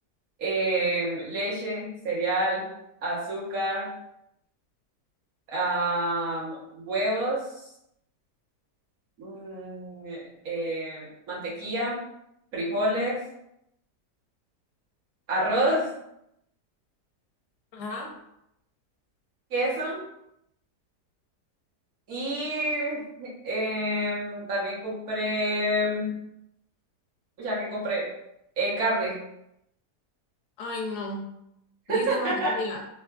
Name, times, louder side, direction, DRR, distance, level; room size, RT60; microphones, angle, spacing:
voice 1, 0.4-2.6 3.0-3.9 5.5-7.4 9.2-12.0 12.5-13.3 15.3-15.9 19.5-20.0 22.1-26.2 27.4-28.1 28.6-29.2 31.9-32.5, right 1 dB, 60° right, -6 dB, 1.4 m, -28 dB
voice 2, 17.7-18.1 30.6-31.2 31.9-32.8, left 2 dB, 75° left, 1 dB, 1.1 m, -33 dB
3.4 x 2.4 x 2.2 m, 0.80 s
omnidirectional pair, 1.8 m